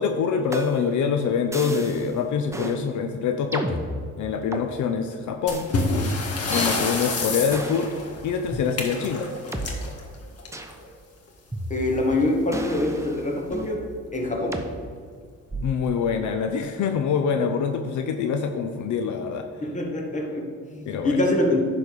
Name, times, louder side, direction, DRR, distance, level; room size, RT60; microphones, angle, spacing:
voice 1, 0.0-3.8 4.2-5.7 6.5-7.9 8.2-9.3 15.6-19.4 20.9-21.2, left 6 dB, 75° left, 6 dB, 0.7 m, -25 dB
sound 1, 0.5-1.0 1.5-2.1 2.5-2.8 3.5-4.7 5.5-5.7 6.5-6.7 7.5-7.9 8.5-8.6 9.5-9.7 10.5-10.8 11.5-12.1 12.5-13.8 14.5-14.7 15.5-15.9, right 1 dB, 10° right, 0.9 m, -33 dB
sound 2, 5.5-10.9 12.1-12.3 12.6-12.7 13.3-13.4 14.1-14.4, left 3 dB, 55° left, 1.7 m, -28 dB
voice 2, 11.7-13.8 14.1-14.7 19.6-21.6, left 2 dB, 25° left, 0 dB, 2.1 m, -25 dB
10.5 x 4.2 x 6.8 m, 2.1 s
cardioid pair, 90°, 30 cm